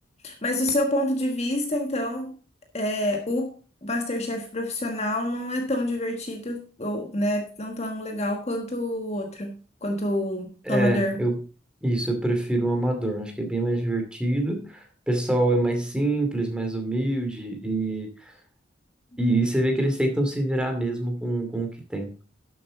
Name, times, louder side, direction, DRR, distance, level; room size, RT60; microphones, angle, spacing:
voice 1, 0.2-2.4 2.7-3.5 3.8-11.2, left 1 dB, 35° left, 1.4 m, -27 dB
voice 2, 10.7-11.4 11.8-18.3 19.2-22.3, right 1 dB, 5° right, 2.4 m, -25 dB
12.0 x 7.9 x 3.9 m
head